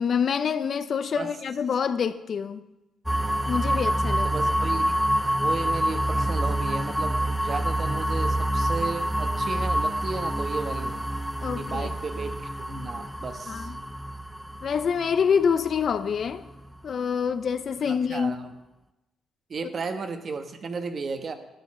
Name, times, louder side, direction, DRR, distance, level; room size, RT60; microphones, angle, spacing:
voice 1, 0.0-2.6 3.5-4.3 11.4-11.9 13.5-13.8 14.6-16.4 16.8-18.4, left 6 dB, 55° left, 12 dB, 0.6 m, -26 dB
sound 1, 3.1-16.8, right 1 dB, ahead, 0.5 m, -27 dB
voice 2, 4.2-5.0 5.4-11.1 11.6-13.7 17.8-18.5 19.5-21.3, right 4 dB, 45° right, 7 dB, 1.2 m, -34 dB
11.5 x 8.5 x 6.2 m, 0.99 s
cardioid pair, 90°, 0 cm